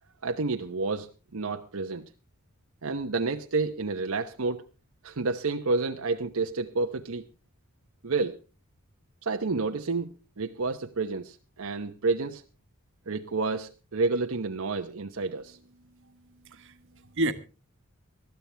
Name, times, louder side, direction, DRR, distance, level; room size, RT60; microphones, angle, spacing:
voice 1, 0.2-2.1 2.8-4.6 5.0-7.2 8.0-8.4 9.2-12.4 13.1-15.6, right 3 dB, 90° right, 1.0 m, -30 dB
voice 2, 15.8-17.3, right 1 dB, 60° right, 1.4 m, -33 dB
20.0 x 13.5 x 3.4 m
head